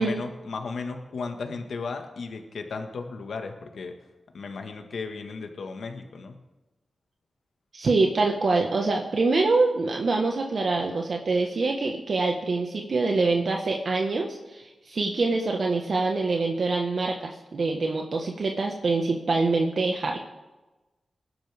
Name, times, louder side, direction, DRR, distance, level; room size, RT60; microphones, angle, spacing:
voice 1, 0.0-3.9 4.3-6.4, left 4 dB, 80° left, 5 dB, 1.6 m, -35 dB
voice 2, 7.7-20.2, right 3 dB, 60° right, 1 dB, 1.4 m, -25 dB
20.5 x 11.5 x 3.6 m, 1.1 s
cardioid pair, 75°, 0 cm